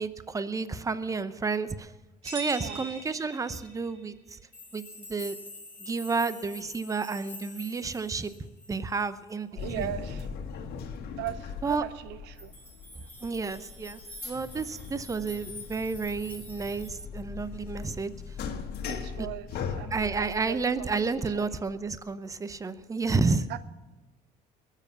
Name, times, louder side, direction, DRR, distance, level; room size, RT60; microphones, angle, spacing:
voice 1, 0.0-1.9 2.2-4.4 4.7-5.4 5.8-9.5 9.8-9.9 11.6-11.8 13.2-18.1 19.2-19.3 19.9-23.6, right 4 dB, 20° right, 13 dB, 0.8 m, -31 dB
sound 1, 2.2-4.1, right 2 dB, 35° right, 4.2 m, -41 dB
sound 2, 4.5-9.0 12.4-16.9, left 2 dB, 10° left, 6.1 m, -46 dB
sound 3, 9.6-22.0, left 6 dB, 70° left, 1.7 m, -40 dB
voice 2, 9.6-10.3 11.2-12.5 18.9-19.5 19.7-20.9 21.4-21.5 23.5-23.6, right 12 dB, 85° right, 14 dB, 0.7 m, -38 dB
22.5 x 7.4 x 6.8 m, 1.2 s
cardioid pair, 110°, 17 cm